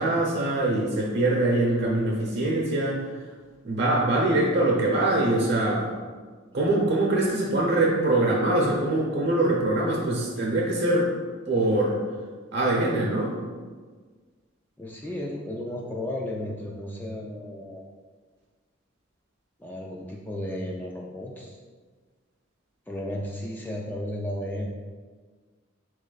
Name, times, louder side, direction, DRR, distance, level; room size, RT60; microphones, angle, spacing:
voice 1, 0.0-3.0 3.6-5.9 6.5-11.1 11.5-12.0 12.5-13.3, right 2 dB, 55° right, -3 dB, 0.7 m, -23 dB
voice 2, 14.8-17.8 19.6-21.6 22.9-24.7, left 1 dB, 10° left, -2 dB, 0.3 m, -34 dB
4.0 x 3.2 x 3.9 m, 1.5 s
head